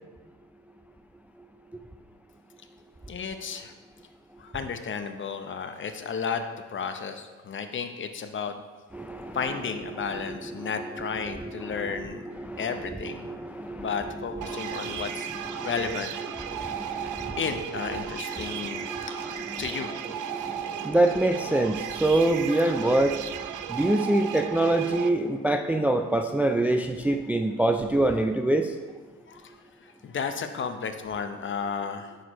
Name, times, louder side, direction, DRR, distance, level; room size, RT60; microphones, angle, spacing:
voice 1, 3.1-3.7 4.4-8.5 9.3-12.3 12.6-13.3 13.8-15.3 15.6-16.1 16.5-16.7 17.0-19.9 29.3-32.3, left 6 dB, 40° left, 8 dB, 0.7 m, -33 dB
voice 2, 8.9-9.4 10.0-10.2 10.6-10.7 11.4-12.0 12.4-13.9 14.5-15.7 16.4-17.4 18.3-19.7 20.3-28.7, right 1 dB, 5° right, 6 dB, 0.3 m, -26 dB
sound 1, 14.4-25.1, right 10 dB, 85° right, 0.5 m, -35 dB
9.0 x 6.4 x 3.0 m, 1.3 s
cardioid pair, 90°, 30 cm